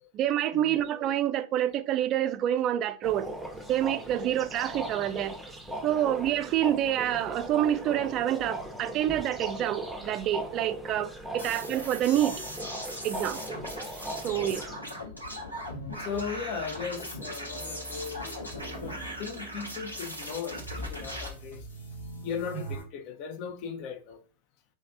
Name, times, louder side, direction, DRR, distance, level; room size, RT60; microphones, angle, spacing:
voice 1, 0.1-3.3 3.7-5.3 5.8-12.4 13.0-13.4 14.2-14.7, right 11 dB, 35° right, 0.4 m, -27 dB
sound 1, 3.0-14.8, right 1 dB, ahead, 0.8 m, -39 dB
sound 2, 11.4-21.3, equal, 90° left, 1.8 m, -39 dB
sound 3, 15.9-22.8, right 1 dB, 65° left, 1.5 m, -43 dB
voice 2, 16.0-21.7 22.2-24.2, left 6 dB, 40° left, 0.7 m, -38 dB
3.4 x 3.2 x 4.0 m
figure-of-eight pair, 90°, 0 cm